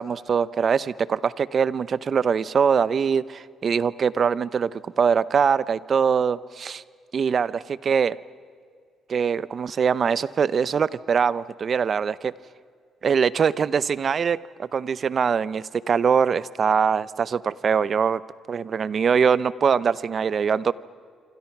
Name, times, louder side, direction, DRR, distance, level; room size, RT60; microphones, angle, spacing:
voice 1, 0.0-6.8 7.1-8.2 9.1-12.3 13.0-18.2 18.5-20.7, right 6 dB, 50° right, 18 dB, 0.7 m, -23 dB
27.5 x 26.0 x 6.0 m, 2.1 s
cardioid pair, 90°, 0 cm